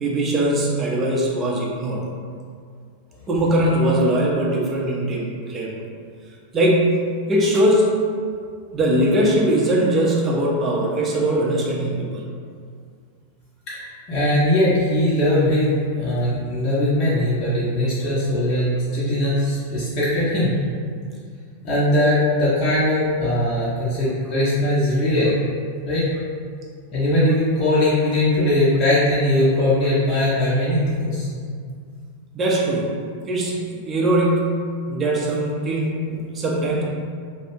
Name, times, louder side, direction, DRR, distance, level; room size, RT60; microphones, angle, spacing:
voice 1, 0.0-2.0 3.3-5.7 6.5-7.9 8.7-12.2 32.3-32.9 33.3-36.8, right 1 dB, 25° right, -3 dB, 0.5 m, -21 dB
voice 2, 14.1-20.6 21.6-25.4 25.8-26.0 26.9-31.3, left 1 dB, 35° left, -9 dB, 0.6 m, -20 dB
2.4 x 2.0 x 2.9 m, 2.1 s
figure-of-eight pair, 90°, 0 cm